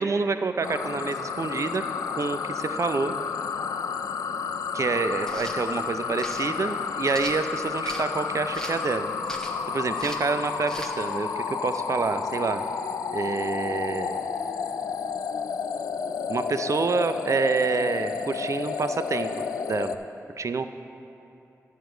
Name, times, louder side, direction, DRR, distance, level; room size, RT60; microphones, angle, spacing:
voice 1, 0.0-1.8 2.1-3.1 4.7-9.1 9.7-12.6 13.1-14.2 16.3-20.0 20.4-20.7, right 4 dB, 55° right, 10 dB, 0.4 m, -27 dB
sound 1, 0.6-19.9, left 6 dB, 85° left, 0.3 m, -31 dB
sound 2, 5.2-5.6 6.2-6.4 7.1-8.1 8.5-8.9 9.3-9.6 10.0-10.3 10.7-10.9, equal, 10° left, 1.1 m, -38 dB
10.5 x 4.7 x 7.9 m, 2.8 s
cardioid pair, 50°, 6 cm